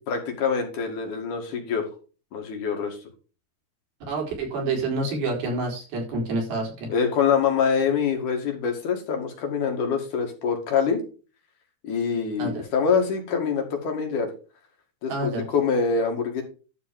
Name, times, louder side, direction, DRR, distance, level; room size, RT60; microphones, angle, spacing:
voice 1, 0.1-1.9 2.3-3.0 6.9-11.0 11.8-14.3 15.0-16.4, left 6 dB, 60° left, 3 dB, 3.3 m, -25 dB
voice 2, 4.1-6.9 12.4-12.6 15.1-15.4, right 2 dB, 80° right, 0 dB, 5.7 m, -28 dB
12.5 x 4.1 x 7.3 m, 0.35 s
omnidirectional pair, 4.3 m